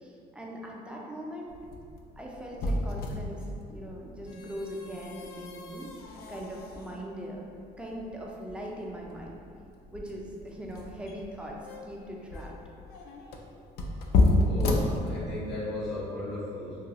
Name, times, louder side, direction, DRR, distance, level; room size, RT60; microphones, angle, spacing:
voice 1, 0.0-1.6 2.2-5.9 6.3-7.4 7.8-9.4 9.9-12.6, equal, 5° right, -2 dB, 0.4 m, -40 dB
sound 1, 1.5-15.6, left 2 dB, 70° left, 0.4 m, -32 dB
voice 2, 14.4-16.8, left 1 dB, 85° left, -8 dB, 1.3 m, -35 dB
2.9 x 2.3 x 2.8 m, 2.5 s
cardioid pair, 110°, 17 cm